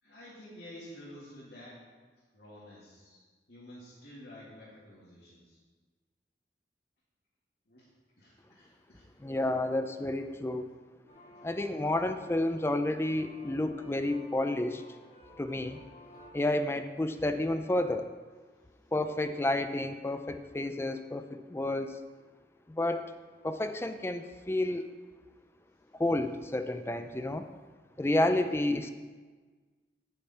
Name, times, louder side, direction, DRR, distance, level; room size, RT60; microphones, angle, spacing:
voice 1, 0.0-1.8 2.3-5.6 7.7-7.9 8.2-9.5 11.1-11.6 18.5-18.7, left 1 dB, 70° left, -9 dB, 2.0 m, -51 dB
voice 2, 9.2-10.7 11.4-14.8 15.4-15.8 16.3-18.1 18.9-22.0 22.7-23.1 23.4-24.8 25.9-27.5 28.0-28.9, left 1 dB, 15° left, 9 dB, 0.3 m, -30 dB
sound 1, 11.1-16.3, left 1 dB, 45° left, 1.9 m, -54 dB
9.5 x 6.6 x 4.2 m, 1.4 s
head